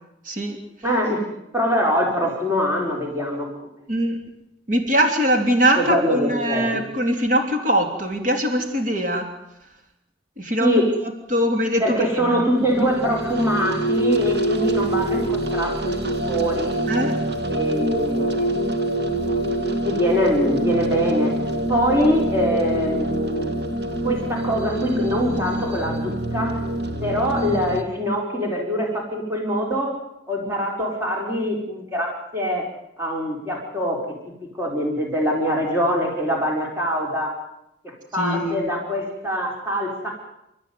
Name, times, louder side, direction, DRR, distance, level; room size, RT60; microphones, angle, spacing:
voice 1, 0.3-0.6 3.9-4.2 4.7-9.3 10.4-10.7 11.3-12.5 16.9-17.2 38.2-38.6, equal, 45° right, 4 dB, 3.4 m, -22 dB
voice 2, 0.8-1.2 1.5-3.7 5.8-6.8 10.6-10.9 11.8-16.0 16.2-16.7 17.5-18.5 19.8-21.3 21.7-23.6 24.0-26.6 27.0-29.9 30.3-32.6 33.0-34.2 34.5-37.3 38.1-40.1, equal, 15° right, -1 dB, 4.7 m, -23 dB
sound 1, 12.6-27.8, right 1 dB, 60° right, 2.1 m, -25 dB
29.5 x 14.0 x 9.5 m, 0.86 s
head